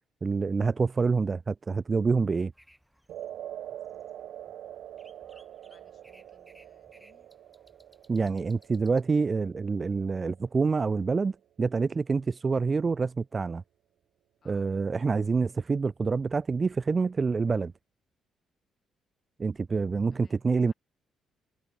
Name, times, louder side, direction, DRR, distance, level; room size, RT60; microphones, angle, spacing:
voice 1, 0.2-2.5 8.1-13.6 14.5-17.7 19.4-20.7, right 4 dB, 35° right, 0.4 m, -27 dB
sound 1, 2.5-9.0, equal, ahead, 2.6 m, -62 dB
sound 2, 3.1-11.4, right 11 dB, 75° right, 0.9 m, -45 dB
voice 2, 5.7-7.3 14.4-14.7 20.1-20.7, left 6 dB, 45° left, 5.9 m, -65 dB
cardioid pair, 90°, 0 cm